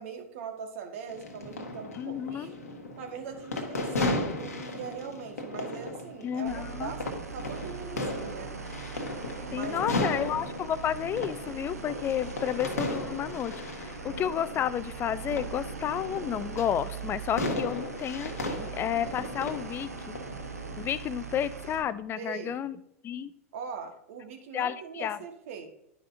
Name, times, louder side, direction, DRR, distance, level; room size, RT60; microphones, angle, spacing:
voice 1, 0.0-2.5 3.0-8.5 9.5-10.2 22.2-22.6 23.5-25.7, right 6 dB, 60° right, 5 dB, 1.4 m, -41 dB
sound 1, 1.1-20.8, left 2 dB, 90° left, 1.1 m, -36 dB
voice 2, 1.9-2.5 6.2-6.9 9.5-20.1 20.8-22.8 23.0-23.3 24.5-25.2, left 9 dB, 30° left, 15 dB, 0.4 m, -31 dB
sound 2, 6.5-21.8, right 6 dB, 90° right, 0.8 m, -41 dB
10.5 x 5.4 x 2.6 m, 0.77 s
hypercardioid pair, 100°, 8 cm